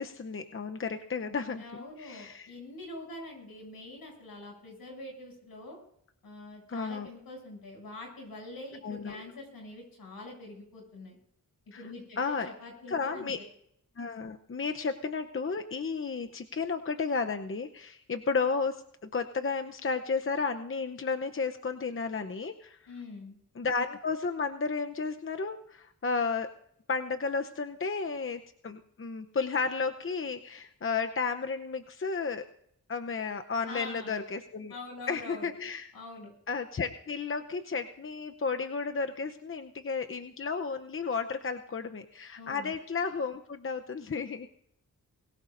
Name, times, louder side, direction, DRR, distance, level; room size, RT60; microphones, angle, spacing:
voice 1, 0.0-1.6 2.0-2.5 6.7-7.1 8.8-9.2 11.7-11.8 12.2-12.5 12.9-13.4 14.0-22.8 23.6-26.5 26.9-32.4 32.9-34.7 35.1-35.9 36.5-44.5, left 4 dB, 35° left, 7 dB, 0.8 m, -33 dB
voice 2, 1.6-5.8 6.2-11.2 11.8-13.5 22.9-23.4 33.7-34.2 34.7-35.5 35.9-36.3 42.4-42.7, left 2 dB, 80° left, 0 dB, 7.6 m, -45 dB
23.0 x 16.0 x 2.6 m, 0.69 s
cardioid pair, 60°, 35 cm